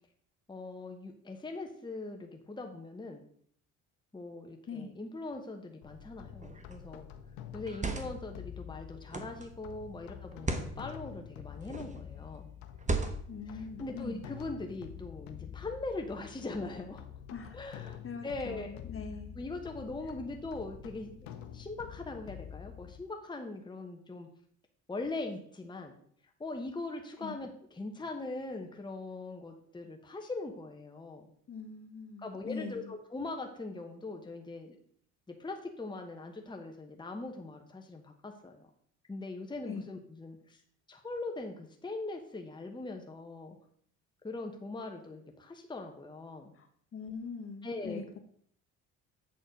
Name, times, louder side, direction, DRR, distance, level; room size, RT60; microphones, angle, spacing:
voice 1, 0.5-3.2 4.1-7.1 7.5-12.5 13.5-17.1 17.5-18.7 19.3-24.3 24.9-26.0 26.4-31.3 32.2-34.8 35.3-38.7 39.1-40.6 40.9-43.6 44.2-46.5 47.6-48.2, left 2 dB, 15° left, 3 dB, 1.1 m, -41 dB
sound 1, 5.8-23.0, left 10 dB, 85° left, 0.8 m, -47 dB
sound 2, 6.4-6.7 7.6-8.3 9.1-9.5 10.3-10.7 11.6-12.0 12.8-13.4, right 3 dB, 20° right, 1.1 m, -35 dB
voice 2, 13.3-14.2 17.3-17.6 18.0-19.3 27.2-27.3 31.5-32.9 39.7-39.8 46.5-48.2, left 5 dB, 40° left, 5 dB, 1.3 m, -42 dB
8.1 x 4.2 x 5.2 m, 0.62 s
supercardioid pair, 75°, 35 cm